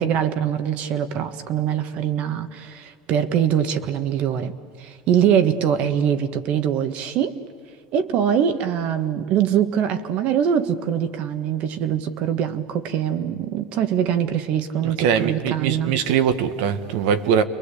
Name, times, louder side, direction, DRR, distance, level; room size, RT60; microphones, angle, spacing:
voice 1, 0.0-4.5 4.8-7.4 7.9-16.0, right 9 dB, 50° right, 10 dB, 1.7 m, -23 dB
voice 2, 14.8-17.4, right 8 dB, 70° right, 9 dB, 1.8 m, -21 dB
30.0 x 23.0 x 8.6 m, 2.2 s
supercardioid pair, 140°, 3 cm